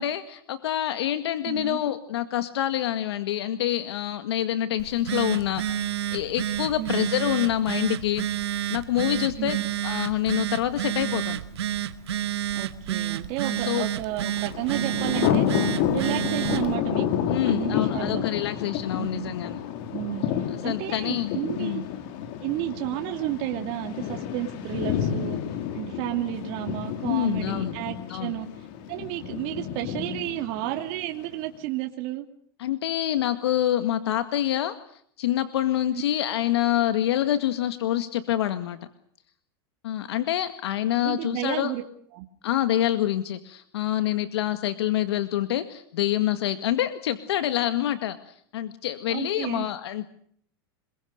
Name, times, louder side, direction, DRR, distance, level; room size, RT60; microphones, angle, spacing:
voice 1, 0.0-8.3 8.7-9.6 9.8-11.4 13.4-13.9 17.3-19.6 20.5-21.3 21.6-21.8 27.1-27.7 28.1-28.4 32.6-38.8 39.8-41.7 42.4-50.1, left 12 dB, 80° left, 10 dB, 2.0 m, -26 dB
voice 2, 1.4-1.8 6.7-7.1 9.4-9.6 12.5-15.6 15.9-17.1 17.4-18.2 19.0-19.3 19.9-21.8 22.4-25.4 25.7-28.5 28.9-32.3 41.0-41.8 42.1-42.3 49.1-49.7, right 14 dB, 50° right, 4 dB, 2.8 m, -32 dB
Telephone, 4.8-16.7, right 11 dB, 90° right, 2.0 m, -30 dB
Thunder, 14.4-31.3, left 9 dB, 55° left, 3.8 m, -30 dB
28.0 x 22.0 x 6.6 m, 0.64 s
supercardioid pair, 130°, 13 cm